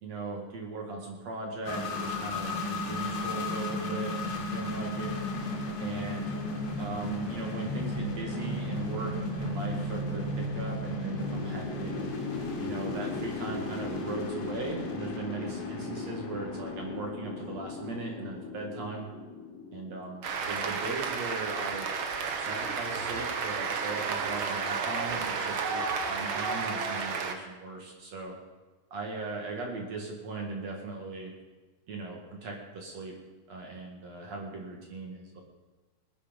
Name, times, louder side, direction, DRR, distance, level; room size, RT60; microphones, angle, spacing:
voice 1, 0.0-5.1 5.8-6.3 6.8-11.9 12.6-19.1 19.7-21.9 22.4-28.3 28.9-31.3 31.9-33.1 33.5-35.4, right 3 dB, 50° right, 0 dB, 2.9 m, -38 dB
sound 1, 1.6-20.1, left 2 dB, 75° left, 4.1 m, -34 dB
Cheering / Applause, 20.2-27.3, right 5 dB, 75° right, 1.2 m, -32 dB
21.0 x 10.0 x 5.3 m, 1.2 s
omnidirectional pair, 4.1 m